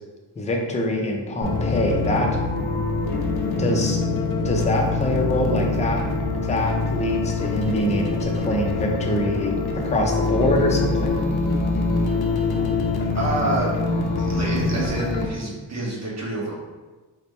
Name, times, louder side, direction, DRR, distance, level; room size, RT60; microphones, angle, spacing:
voice 1, 0.4-2.4 3.6-4.0 4.4-6.1 6.3-11.2, left 1 dB, 15° left, 0 dB, 0.5 m, -24 dB
sound 1, 1.4-15.3, left 3 dB, 55° left, 0.6 m, -24 dB
voice 2, 13.1-13.8 14.2-16.7, right 2 dB, 35° right, -4 dB, 1.0 m, -28 dB
4.1 x 2.1 x 3.1 m, 1.3 s
cardioid pair, 100°, 46 cm